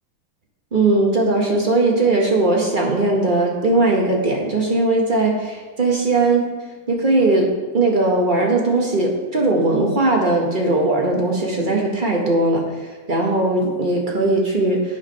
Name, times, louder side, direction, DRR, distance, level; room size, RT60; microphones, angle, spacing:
voice 1, 0.7-6.5 6.9-15.0, right 2 dB, 35° right, -1 dB, 0.8 m, -19 dB
8.8 x 4.8 x 5.4 m, 1.3 s
omnidirectional pair, 2.2 m